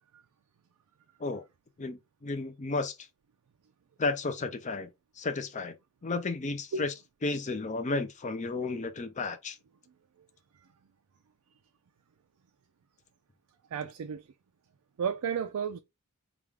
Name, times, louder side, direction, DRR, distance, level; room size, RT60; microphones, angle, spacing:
voice 1, 1.8-3.0 4.0-4.9 5.2-5.7 6.0-6.9 7.2-9.6, left 3 dB, 35° left, 0.5 m, -33 dB
voice 2, 13.7-14.3 15.0-15.8, right 6 dB, 85° right, 0.4 m, -32 dB
3.5 x 2.4 x 3.3 m
head